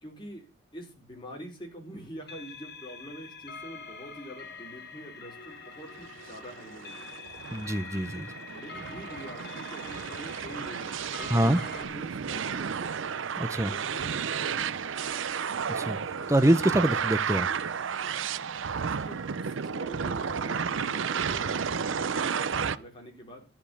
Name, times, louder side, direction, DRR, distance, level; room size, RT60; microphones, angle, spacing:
voice 1, 0.0-7.1 8.5-13.2 13.6-15.0 16.2-16.4 17.4-17.6 18.6-23.5, equal, 25° left, 0 dB, 4.3 m, -45 dB
sound 1, 2.2-11.8, left 5 dB, 50° left, 2.3 m, -45 dB
sound 2, 5.9-22.8, right 6 dB, 70° right, 0.6 m, -32 dB
voice 2, 7.5-8.3 11.3-11.6 13.4-13.7 15.7-17.5, right 1 dB, 15° right, 12 dB, 0.6 m, -25 dB
13.5 x 5.2 x 8.5 m, 0.32 s
head